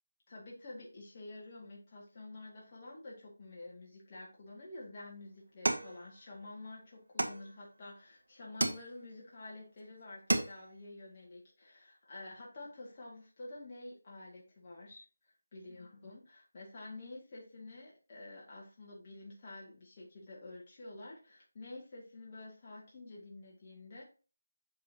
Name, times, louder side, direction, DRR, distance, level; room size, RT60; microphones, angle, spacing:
voice 1, 0.3-15.1 15.5-24.0, left 2 dB, 30° left, -3 dB, 1.9 m, -49 dB
sound 1, 5.6-6.6 7.2-7.9 8.6-9.3 9.8-9.9 10.1-10.8, right 2 dB, 80° right, 1.2 m, -34 dB
7.0 x 6.3 x 2.8 m, 0.35 s
figure-of-eight pair, 170°, 0 cm